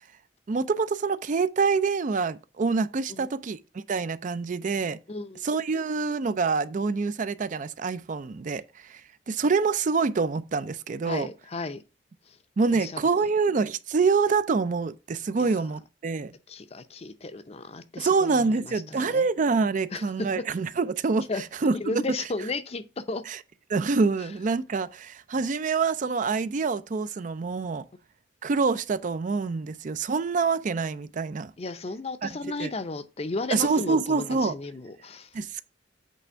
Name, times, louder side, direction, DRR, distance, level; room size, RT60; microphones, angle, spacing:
voice 1, 0.5-5.0 5.4-9.0 9.3-11.3 12.6-16.3 18.0-21.3 21.6-21.7 23.3-23.4 23.7-27.8 28.4-31.5 32.2-32.3 32.6-32.7 33.5-34.6 35.3-35.6, right 4 dB, 45° right, 0.4 m, -26 dB
voice 2, 5.1-5.4 11.1-11.8 12.3-12.4 12.7-13.1 15.4-15.5 16.5-19.3 19.9-20.3 21.3-21.4 21.7-23.2 31.6-35.3, left 3 dB, 35° left, 0.6 m, -34 dB
8.4 x 3.3 x 4.5 m
head